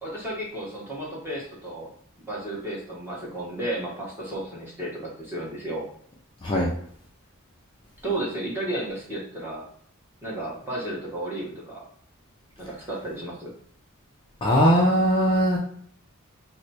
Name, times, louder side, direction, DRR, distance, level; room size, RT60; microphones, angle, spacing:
voice 1, 0.0-1.9 2.2-5.8 8.0-9.7 10.2-11.8 12.6-13.5, right 1 dB, 10° right, -5 dB, 1.2 m, -33 dB
voice 2, 6.4-6.7 14.4-15.6, equal, 25° left, -4 dB, 0.5 m, -20 dB
3.1 x 2.1 x 4.1 m, 0.64 s
head